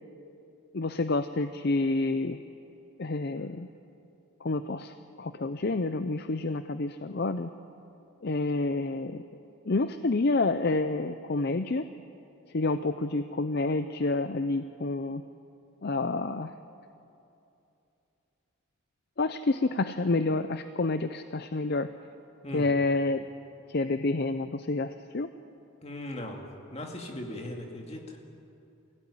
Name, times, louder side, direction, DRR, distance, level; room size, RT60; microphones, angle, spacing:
voice 1, 0.7-2.4 3.0-3.7 4.4-7.5 8.2-9.2 9.7-11.9 12.5-15.2 15.8-16.5 19.2-21.9 22.5-23.3 23.7-25.3, left 2 dB, 45° left, 10 dB, 0.6 m, -28 dB
voice 2, 25.8-26.4 26.7-28.2, left 1 dB, 30° left, 1 dB, 2.4 m, -38 dB
23.5 x 16.5 x 10.0 m, 2.7 s
head